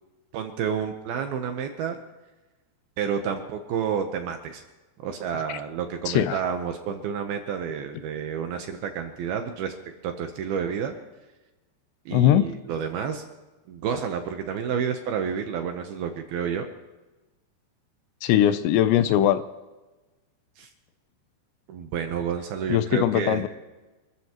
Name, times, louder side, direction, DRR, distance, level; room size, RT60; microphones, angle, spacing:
voice 1, 0.3-2.0 3.0-4.6 5.0-9.7 10.0-11.0 12.1-13.2 13.7-16.6 20.6-20.7 21.7-23.4, right 7 dB, 75° right, 5 dB, 2.4 m, -30 dB
voice 2, 6.1-6.4 12.1-12.5 18.2-19.4 22.7-23.5, left 11 dB, 80° left, 11 dB, 2.8 m, -21 dB
27.5 x 14.0 x 3.0 m, 1.1 s
omnidirectional pair, 5.2 m